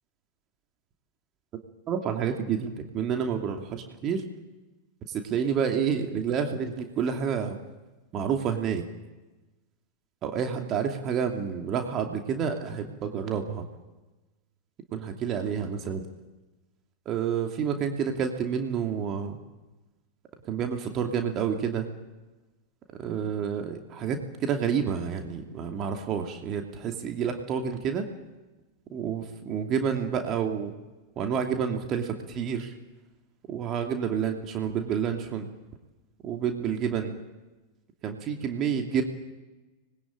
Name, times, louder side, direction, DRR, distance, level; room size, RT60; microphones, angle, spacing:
voice 1, 1.9-4.2 5.3-7.6 8.1-8.8 10.2-13.6 14.9-16.0 17.1-19.4 20.4-21.9 23.0-28.0 28.9-30.7 31.2-32.7 33.5-35.5 36.2-37.2 38.0-39.0, right 7 dB, 30° right, 4 dB, 2.8 m, -29 dB
25.0 x 21.5 x 8.9 m, 1.1 s
figure-of-eight pair, 90°, 0 cm